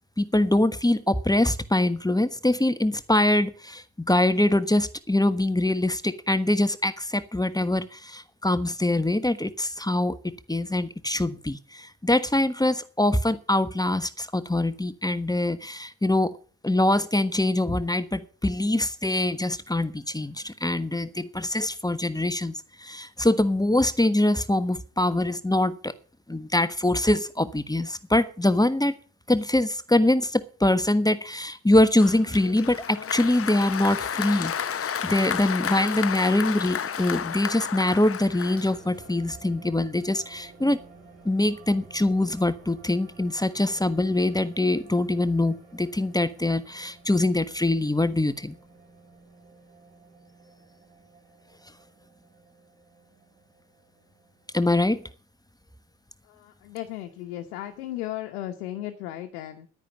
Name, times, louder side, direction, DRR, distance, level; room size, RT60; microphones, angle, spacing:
voice 1, 0.2-16.3 16.6-25.9 26.3-28.9 29.3-34.5 34.8-40.8 41.2-48.5 54.5-55.0, left 1 dB, 10° left, 13 dB, 1.3 m, -24 dB
Applause, 32.0-39.1, left 8 dB, 30° left, 0.9 m, -31 dB
sound 1, 38.4-55.0, right 4 dB, 80° right, 4.4 m, -52 dB
voice 2, 56.2-59.7, left 14 dB, 80° left, 5 dB, 1.3 m, -35 dB
11.0 x 9.9 x 7.3 m, 0.40 s
hypercardioid pair, 50°, 44 cm